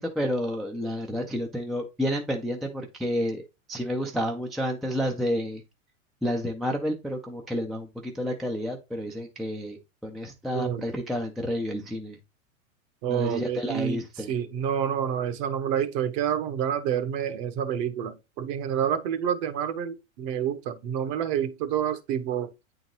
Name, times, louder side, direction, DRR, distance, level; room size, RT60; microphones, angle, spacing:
voice 1, 0.0-5.6 6.2-9.8 10.0-12.2 13.1-14.3, equal, ahead, 0.3 m, -30 dB
voice 2, 13.0-14.0 14.3-22.5, right 9 dB, 45° right, 1.0 m, -28 dB
8.6 x 3.9 x 2.9 m
hypercardioid pair, 105°, 41 cm